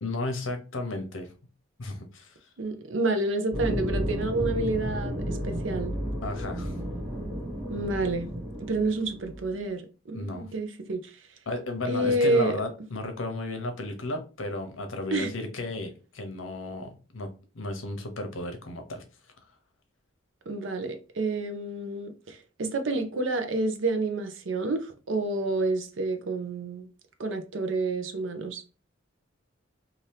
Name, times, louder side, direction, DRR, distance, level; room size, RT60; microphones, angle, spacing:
voice 1, 0.0-1.3 1.8-2.4 6.2-6.8 10.1-10.5 11.5-19.0, left 2 dB, 80° left, 0.8 m, -34 dB
voice 2, 2.6-5.9 7.7-8.3 8.6-11.1 11.8-12.6 15.1-15.3 20.5-26.9 27.2-28.8, right 2 dB, 75° right, 0.6 m, -29 dB
sound 1, 3.5-9.5, equal, 25° right, 1.5 m, -32 dB
2.7 x 2.5 x 3.3 m
head